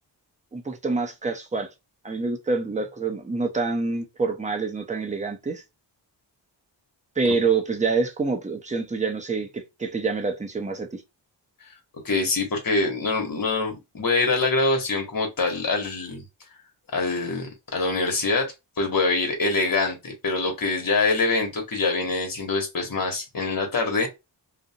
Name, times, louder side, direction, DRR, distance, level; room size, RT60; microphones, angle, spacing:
voice 1, 0.5-1.7 2.0-5.6 7.2-11.0, right 4 dB, 15° right, 0.6 m, -26 dB
voice 2, 12.0-16.2 16.9-24.1, left 3 dB, 50° left, 1.1 m, -24 dB
2.5 x 2.1 x 2.7 m
wide cardioid pair, 85°, 44 cm